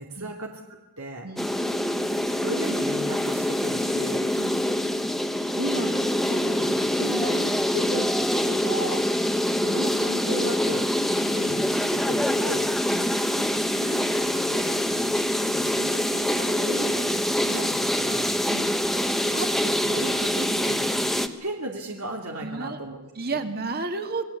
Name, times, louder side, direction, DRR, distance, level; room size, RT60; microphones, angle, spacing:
voice 1, 0.0-1.3 2.2-4.2 5.6-8.0 8.3-9.1 9.5-10.9 11.3-12.7 13.4-13.5 13.7-14.9 15.3-18.3 18.9-19.0 19.3-23.0 23.3-23.4, right 2 dB, 75° right, 1 dB, 2.7 m, -35 dB
voice 2, 1.2-1.5 4.3-4.6 7.8-8.0 11.1-11.4 12.9-13.1 18.4-18.7 22.4-22.8 23.1-24.2, right 3 dB, 45° right, 7 dB, 2.2 m, -32 dB
sound 1, 1.4-21.3, left 1 dB, ahead, 1.2 m, -25 dB
27.0 x 20.0 x 8.3 m, 1.1 s
head